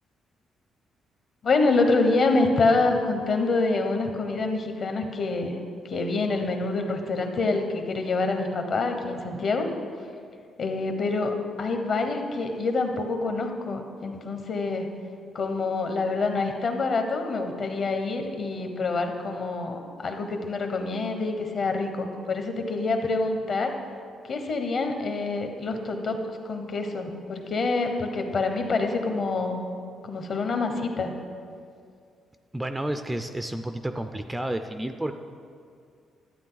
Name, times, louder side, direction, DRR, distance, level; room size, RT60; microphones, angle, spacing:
voice 1, 1.4-5.6 5.8-9.7 10.6-14.9 15.3-23.7 24.3-29.7 30.0-31.1, left 3 dB, 45° left, 5 dB, 1.0 m, -26 dB
voice 2, 32.5-35.2, right 1 dB, 10° right, 8 dB, 0.3 m, -31 dB
12.0 x 8.7 x 3.9 m, 2.3 s
cardioid pair, 145°, 0 cm